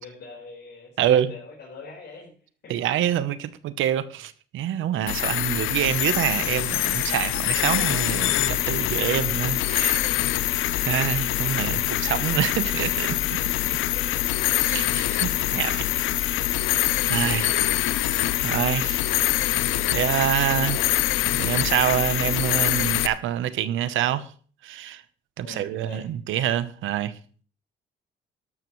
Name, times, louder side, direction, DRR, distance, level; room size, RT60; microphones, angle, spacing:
voice 1, 0.0-2.3 2.6-2.7 13.7-14.2 15.3-15.5 20.5-20.9 25.4-26.1, left 4 dB, 55° left, 4.6 m, -43 dB
voice 2, 1.0-1.3 2.7-10.1 10.7-13.1 14.6-16.0 17.1-17.7 18.4-19.1 19.9-20.8 21.3-24.3 24.6-25.0 25.4-27.1, right 11 dB, 85° right, 0.9 m, -26 dB
sound 1, 5.1-23.1, left 14 dB, 85° left, 0.6 m, -24 dB
12.5 x 12.0 x 3.2 m
cardioid pair, 90°, 20 cm